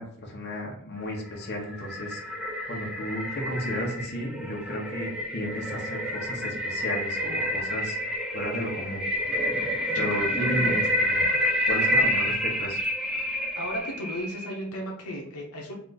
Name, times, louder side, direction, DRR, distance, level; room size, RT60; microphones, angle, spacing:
voice 1, 0.0-9.0 9.9-11.2 11.7-12.8, equal, 50° left, -1 dB, 1.0 m, -34 dB
sound 1, 1.2-14.6, equal, 5° right, 0.6 m, -28 dB
voice 2, 9.9-10.7 11.7-12.1 13.6-15.7, equal, 80° left, -1 dB, 0.8 m, -35 dB
4.0 x 2.5 x 3.9 m, 0.69 s
head